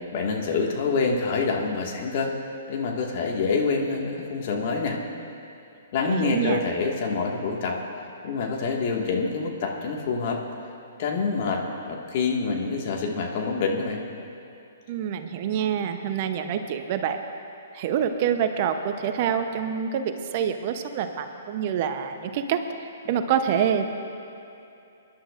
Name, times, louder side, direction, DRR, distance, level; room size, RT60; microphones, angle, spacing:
voice 1, 0.0-2.3 2.7-5.0 5.9-7.8 8.2-10.4 11.0-11.6 11.9-14.0, left 4 dB, 50° left, 0 dB, 1.8 m, -26 dB
voice 2, 6.0-6.6 14.9-17.2 17.7-22.6 23.0-23.9, right 8 dB, 45° right, 7 dB, 0.8 m, -26 dB
25.5 x 11.5 x 2.5 m, 2.7 s
hypercardioid pair, 130°, 0 cm